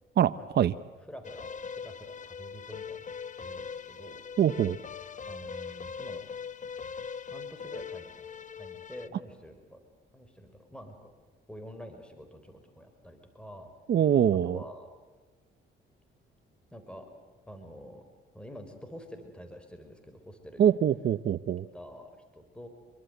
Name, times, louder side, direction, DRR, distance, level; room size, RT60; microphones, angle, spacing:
voice 1, 0.2-0.7 4.4-4.8 13.9-14.6 20.6-21.7, right 9 dB, 55° right, 11 dB, 0.8 m, -24 dB
voice 2, 1.1-4.2 5.3-6.2 7.3-9.8 10.1-11.1 11.5-13.7 14.4-14.9 16.7-17.1 17.5-18.0 18.3-20.6 21.7-22.7, equal, 5° left, 6 dB, 4.5 m, -47 dB
sound 1, 1.2-9.1, left 6 dB, 40° left, 1.1 m, -41 dB
26.5 x 23.5 x 7.9 m, 1.3 s
cardioid pair, 90°, 20 cm